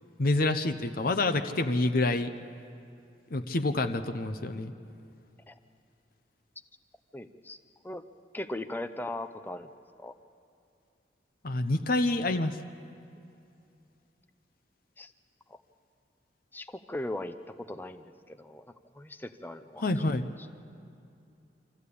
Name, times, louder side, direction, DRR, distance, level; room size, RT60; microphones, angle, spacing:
voice 1, 0.2-2.3 3.3-4.7 11.4-12.6 19.8-20.3, left 2 dB, 55° left, 8 dB, 0.8 m, -27 dB
voice 2, 7.1-8.0 8.3-9.7 10.0-10.2 15.0-15.1 15.5-15.6 16.5-20.1, left 1 dB, 10° left, 8 dB, 0.6 m, -39 dB
25.5 x 14.5 x 8.4 m, 2.6 s
head